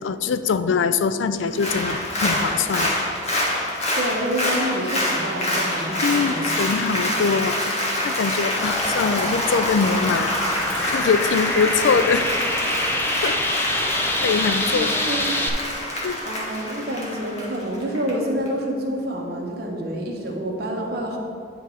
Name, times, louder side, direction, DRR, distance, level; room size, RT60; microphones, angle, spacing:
voice 1, 0.0-2.9 6.0-10.4 10.8-12.3 13.2-13.4 13.7-14.9 16.0-16.2, left 5 dB, 80° left, 12 dB, 0.4 m, -23 dB
Applause, 1.5-18.1 18.5-18.6, left 1 dB, 35° left, 1.6 m, -26 dB
voice 2, 3.9-6.5 14.7-15.4 16.2-21.2, right 1 dB, 55° right, 0 dB, 1.2 m, -28 dB
sound 1, 8.6-15.5, left 1 dB, 10° left, 0.6 m, -26 dB
10.0 x 3.9 x 4.9 m, 2.3 s
head